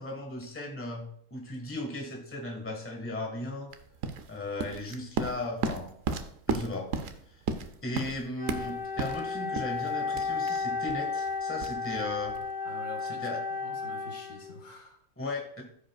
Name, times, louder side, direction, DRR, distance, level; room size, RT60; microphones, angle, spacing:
voice 1, 0.0-3.7 4.3-5.9 6.5-6.9 7.3-7.4 7.8-12.4 13.0-13.4 15.2-15.6, left 2 dB, 10° left, 0 dB, 1.4 m, -36 dB
sound 1, 3.7-12.5, right 5 dB, 65° right, 1.0 m, -35 dB
Wind instrument woodwind instrument, 8.3-14.7, left 4 dB, 55° left, 2.1 m, -33 dB
voice 2, 12.6-15.0, left 3 dB, 75° left, 2 dB, 2.0 m, -47 dB
14.0 x 5.0 x 2.3 m, 0.65 s
omnidirectional pair, 1.6 m